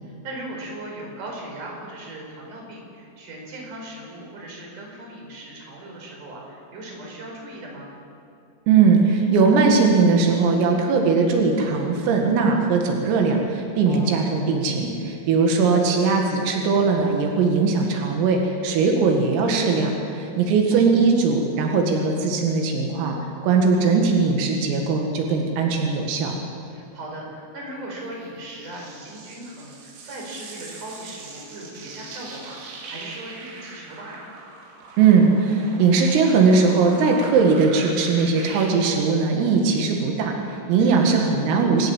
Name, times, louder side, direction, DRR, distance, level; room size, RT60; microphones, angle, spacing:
voice 1, 0.0-7.9 13.8-14.2 15.9-16.0 20.5-20.8 26.7-32.6 32.9-34.3 40.8-41.2, right 1 dB, 40° right, -1 dB, 6.1 m, -38 dB
voice 2, 8.7-23.2 23.4-26.4 35.0-41.9, right 4 dB, 90° right, 2 dB, 4.7 m, -19 dB
sound 1, 28.0-38.7, right 3 dB, 75° right, 5.5 m, -42 dB
27.5 x 16.0 x 7.4 m, 2.7 s
omnidirectional pair, 5.9 m